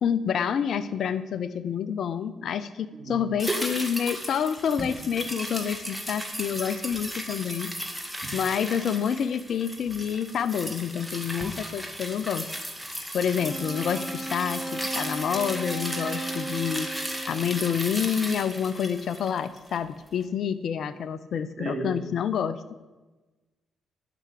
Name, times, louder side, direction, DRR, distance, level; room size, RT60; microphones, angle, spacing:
voice 1, 0.0-7.7 8.3-12.5 13.1-16.9 17.3-22.6, left 8 dB, 65° left, 14 dB, 0.6 m, -28 dB
voice 2, 2.9-3.2 8.2-8.3 21.6-22.0, right 3 dB, 45° right, 1 dB, 2.9 m, -34 dB
sound 1, 3.4-19.9 20.2-20.3, equal, ahead, 2.1 m, -35 dB
Wind instrument woodwind instrument, 13.4-17.9, right 2 dB, 25° left, 3.6 m, -36 dB
11.5 x 6.0 x 8.3 m, 1.2 s
hypercardioid pair, 50°, 0 cm